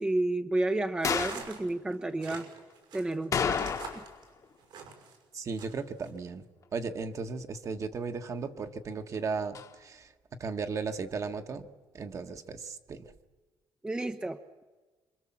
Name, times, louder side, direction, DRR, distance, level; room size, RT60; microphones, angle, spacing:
voice 1, 0.0-2.5 2.9-3.7 13.8-14.6, right 2 dB, 10° right, 7 dB, 0.8 m, -31 dB
sound 1, 1.0-1.5 3.3-4.2 4.4-4.5 9.5-9.7, left 6 dB, 45° left, 1.4 m, -30 dB
sound 2, 1.0-5.2 5.6-6.1, right 6 dB, 80° right, 5.9 m, -45 dB
voice 2, 5.3-6.4 6.7-10.1 10.4-11.7 11.9-13.1, right 4 dB, 40° right, 7 dB, 1.5 m, -36 dB
26.0 x 24.5 x 7.4 m, 1.3 s
cardioid pair, 125°, 8 cm